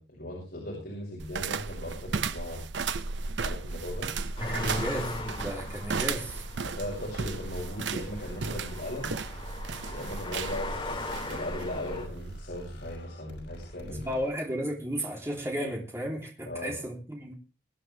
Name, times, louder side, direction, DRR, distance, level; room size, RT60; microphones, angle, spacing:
voice 1, 0.0-2.6 3.4-4.1 6.6-9.1 9.9-14.1 16.4-16.8, left 1 dB, 60° left, 5.7 m, -38 dB
sound 1, 1.2-12.4, right 4 dB, 80° right, 0.7 m, -35 dB
sound 2, 3.6-14.3, equal, 75° left, 5.9 m, -46 dB
Car passing by, 4.4-12.1, left 2 dB, 30° left, 2.2 m, -40 dB
voice 2, 4.4-6.4 13.8-17.3, equal, 15° right, 3.1 m, -34 dB
23.5 x 9.5 x 3.4 m
head